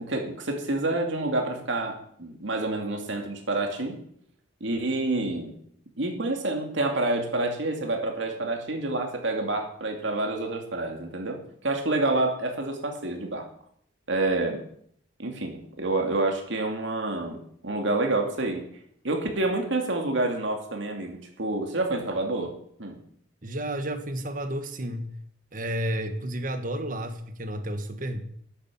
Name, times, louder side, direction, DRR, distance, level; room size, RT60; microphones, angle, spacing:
voice 1, 0.0-4.0 4.6-5.5 6.0-13.5 14.1-14.6 15.2-18.6 19.0-22.5 22.8-23.0, right 2 dB, 75° right, 2 dB, 2.5 m, -28 dB
voice 2, 23.4-25.1 25.5-28.2, right 1 dB, 45° right, 7 dB, 1.4 m, -31 dB
11.5 x 8.6 x 7.2 m, 0.65 s
head